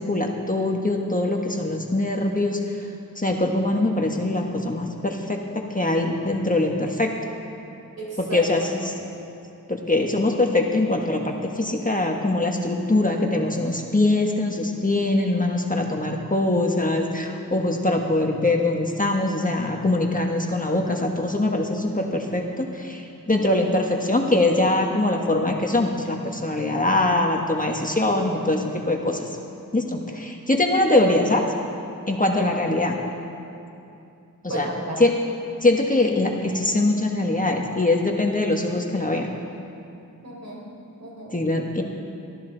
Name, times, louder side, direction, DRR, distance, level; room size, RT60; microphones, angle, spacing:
voice 1, 0.0-2.8 3.2-7.1 8.2-8.9 9.7-29.3 29.7-31.5 32.1-33.0 34.4-34.7 35.0-35.1 35.6-39.3 41.3-41.8, left 2 dB, 25° left, 1 dB, 1.4 m, -23 dB
voice 2, 8.0-9.1 34.5-35.0 40.2-40.6 41.0-41.4, right 1 dB, 50° right, -4 dB, 4.9 m, -34 dB
23.5 x 15.5 x 4.0 m, 2.7 s
wide cardioid pair, 85°, 33 cm